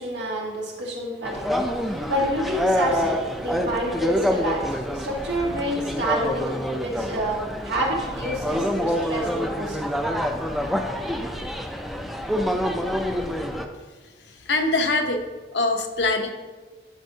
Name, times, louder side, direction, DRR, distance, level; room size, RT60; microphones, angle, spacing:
voice 1, 0.0-1.5 2.1-9.8, equal, 85° right, -2 dB, 1.7 m, -28 dB
sound 1, 1.2-13.6, equal, ahead, 0.4 m, -27 dB
voice 2, 14.5-15.2 15.5-16.3, left 2 dB, 85° left, 4 dB, 0.8 m, -23 dB
10.5 x 5.3 x 2.8 m, 1.3 s
head